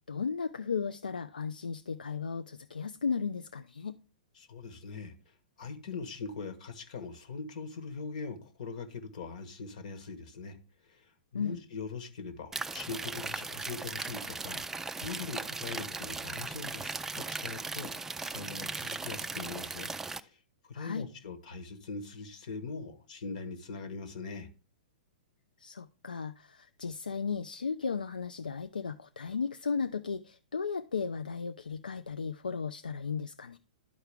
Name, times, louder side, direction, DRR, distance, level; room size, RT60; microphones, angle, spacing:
voice 1, 0.1-4.0 11.3-11.6 20.7-21.1 25.6-33.6, left 5 dB, 80° left, 0.4 m, -35 dB
voice 2, 4.3-10.6 10.8-17.9 18.2-24.5, left 4 dB, 55° left, 1.4 m, -42 dB
sound 1, 12.5-20.2, right 3 dB, 10° right, 0.4 m, -38 dB
12.0 x 4.5 x 3.5 m
figure-of-eight pair, 110°, 5 cm